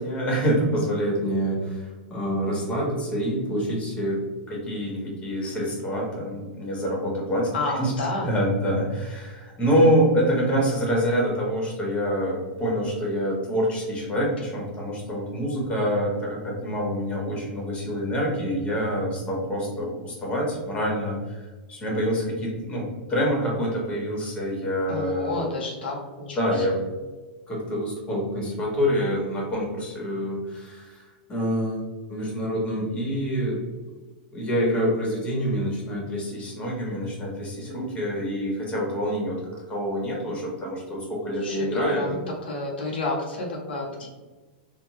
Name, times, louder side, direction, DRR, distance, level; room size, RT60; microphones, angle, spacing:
voice 1, 0.0-4.2 4.5-7.9 8.2-21.4 21.7-25.6 26.3-26.8 27.5-31.0 31.3-31.8 32.1-33.6 34.3-39.4 39.7-42.2, equal, 20° left, -2 dB, 1.3 m, -26 dB
voice 2, 7.5-8.3 24.9-26.8 41.4-42.2 42.5-44.1, left 2 dB, 85° left, -2 dB, 0.8 m, -30 dB
3.4 x 2.3 x 3.1 m, 1.3 s
hypercardioid pair, 120°, 5 cm